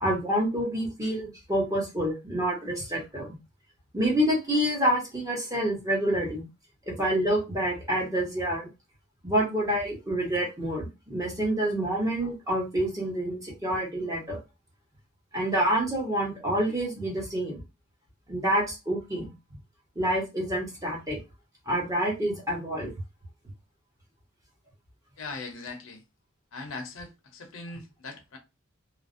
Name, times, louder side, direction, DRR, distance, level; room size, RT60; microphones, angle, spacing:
voice 1, 0.0-3.3 3.9-6.5 6.9-8.7 9.2-14.4 15.3-17.6 18.3-19.3 20.0-21.2 21.7-22.9, right 1 dB, 15° right, 1.0 m, -27 dB
voice 2, 25.2-26.0 26.5-28.4, left 3 dB, 80° left, 0.7 m, -40 dB
2.4 x 2.0 x 2.5 m
head